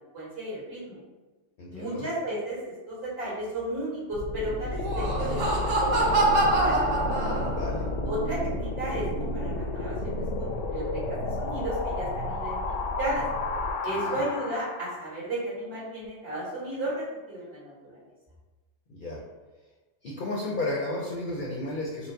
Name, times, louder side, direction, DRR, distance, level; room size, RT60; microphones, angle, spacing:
voice 1, 0.1-1.0 1.7-2.6 2.9-6.8 8.1-12.6 13.0-13.2 13.8-18.0, right 1 dB, 55° right, -8 dB, 1.9 m, -34 dB
voice 2, 1.6-2.1 7.5-7.9 13.9-14.2 18.9-19.2 20.0-22.1, left 2 dB, 55° left, -3 dB, 0.6 m, -33 dB
sound 1, 4.1-15.1, left 2 dB, 85° left, 0.9 m, -31 dB
Laughter, 4.7-7.8, right 2 dB, 90° right, 1.2 m, -25 dB
4.5 x 2.1 x 3.8 m, 1.2 s
omnidirectional pair, 1.3 m